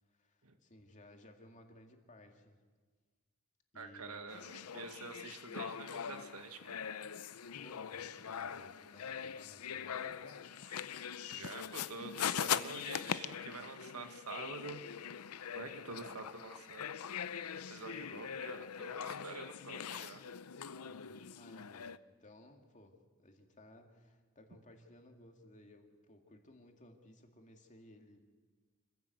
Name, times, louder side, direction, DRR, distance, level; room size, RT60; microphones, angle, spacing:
voice 1, 0.1-2.6 3.7-4.2 7.5-10.5 20.7-21.9 22.2-28.3, left 1 dB, 35° left, 3 dB, 2.3 m, -59 dB
voice 2, 3.7-6.8 10.9-11.0 11.3-14.8 15.5-17.4 17.7-20.2, right 4 dB, 85° right, 7 dB, 1.8 m, -47 dB
sound 1, 4.3-22.0, left 8 dB, 85° left, 0.6 m, -42 dB
26.0 x 15.5 x 7.9 m, 1.5 s
head